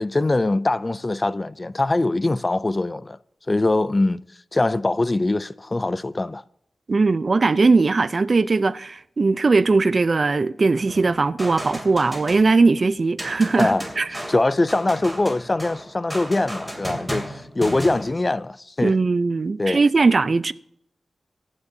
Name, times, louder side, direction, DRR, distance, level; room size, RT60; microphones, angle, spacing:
voice 1, 0.0-3.2 3.5-4.2 4.5-6.4 13.6-13.8 14.3-19.0 19.6-19.8, left 2 dB, 30° left, 0.4 m, -22 dB
voice 2, 6.9-14.1 18.8-20.5, right 3 dB, 50° right, 0.5 m, -19 dB
sound 1, 10.9-12.8 13.2-18.4, equal, ahead, 2.9 m, -34 dB
24.5 x 9.7 x 2.7 m
wide cardioid pair, 90°, 0 cm